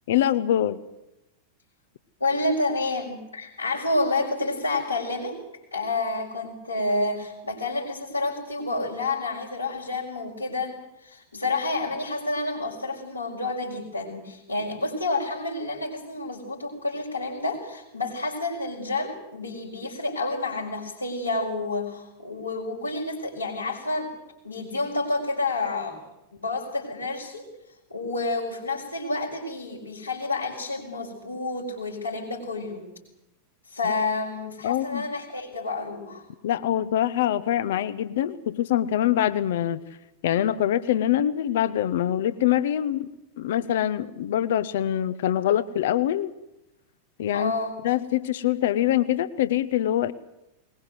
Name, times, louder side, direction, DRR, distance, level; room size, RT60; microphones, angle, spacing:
voice 1, 0.1-0.8 33.8-33.9 34.6-35.1 36.4-39.8 40.2-43.1 43.4-46.3 47.2-47.5 47.8-50.1, left 11 dB, 55° left, 15 dB, 0.9 m, -24 dB
voice 2, 2.2-5.4 5.7-24.1 24.4-26.0 26.3-27.5 27.9-32.9 33.7-36.2 47.3-47.7, left 2 dB, 80° left, -6 dB, 4.8 m, -29 dB
21.0 x 20.5 x 7.8 m, 0.87 s
figure-of-eight pair, 90°, 0 cm